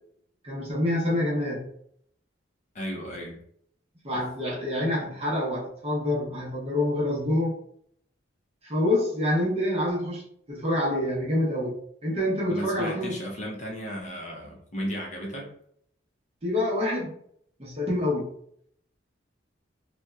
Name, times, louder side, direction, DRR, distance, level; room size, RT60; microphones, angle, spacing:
voice 1, 0.4-1.7 4.0-7.6 8.6-13.2 16.4-17.1 17.6-18.3, left 1 dB, 30° right, -4 dB, 0.7 m, -27 dB
voice 2, 2.7-3.4 4.1-4.2 12.5-15.5, equal, 40° left, -2 dB, 0.5 m, -34 dB
2.7 x 2.1 x 2.2 m, 0.66 s
head